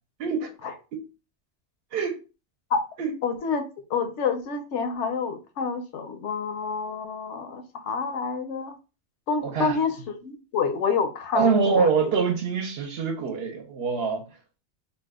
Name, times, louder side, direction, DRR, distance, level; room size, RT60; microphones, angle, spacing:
voice 1, 0.2-0.5 0.9-1.0 1.9-2.2 3.0-3.1 9.4-9.8 11.3-14.2, right 5 dB, 65° right, 0.8 m, -24 dB
voice 2, 3.2-3.6 3.9-8.7 9.3-11.9, left 5 dB, 75° left, 0.9 m, -28 dB
2.6 x 2.2 x 3.4 m
omnidirectional pair, 1.2 m